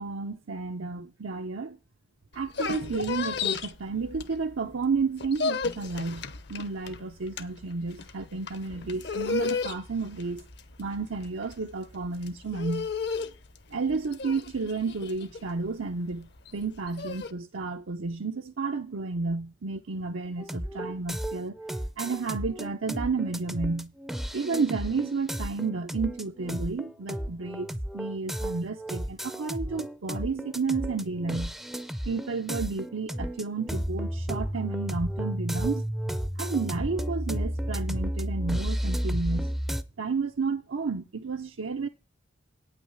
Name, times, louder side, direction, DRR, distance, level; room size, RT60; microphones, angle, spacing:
voice 1, 0.0-1.8 2.3-10.4 10.8-12.9 13.7-21.6 22.0-23.9 24.3-31.6 32.1-39.5 40.0-41.9, right 4 dB, 80° right, 0.7 m, -31 dB
sound 1, 2.3-4.7 5.0-17.3, left 4 dB, 55° left, 0.8 m, -34 dB
sound 2, 20.4-39.8, equal, ahead, 0.5 m, -32 dB
9.0 x 5.9 x 8.0 m
head